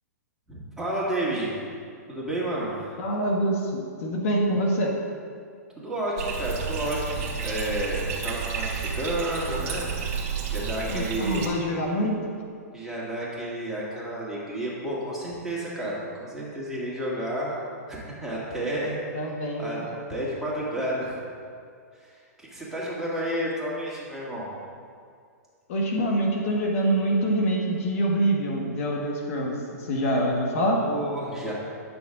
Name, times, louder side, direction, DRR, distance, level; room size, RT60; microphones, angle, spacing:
voice 1, 0.5-1.6 2.1-3.0 5.8-9.9 10.5-11.5 12.7-17.6 17.9-19.0 19.6-19.8 20.1-21.2 21.9-24.5 30.7-31.5, right 1 dB, 5° right, -7 dB, 2.1 m, -31 dB
voice 2, 3.0-4.9 10.9-12.3 19.1-19.6 25.7-30.8, right 1 dB, 55° left, -1 dB, 1.2 m, -25 dB
Bathtub (filling or washing), 6.2-11.5, right 6 dB, 50° right, 1.5 m, -31 dB
9.4 x 6.3 x 3.7 m, 2.2 s
hypercardioid pair, 120°, 9 cm